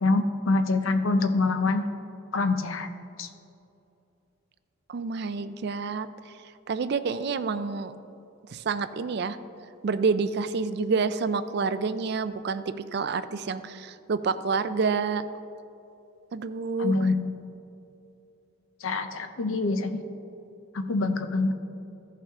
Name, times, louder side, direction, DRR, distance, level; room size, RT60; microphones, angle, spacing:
voice 1, 0.0-1.8 2.3-2.9 3.2-3.3 16.8-17.3 18.8-20.0 20.7-21.5, left 3 dB, 75° left, 8 dB, 0.6 m, -25 dB
voice 2, 4.9-6.3 6.7-7.9 8.5-9.4 9.8-15.2 16.3-17.1, right 4 dB, 50° right, 12 dB, 0.4 m, -28 dB
14.5 x 5.6 x 3.6 m, 2.8 s
head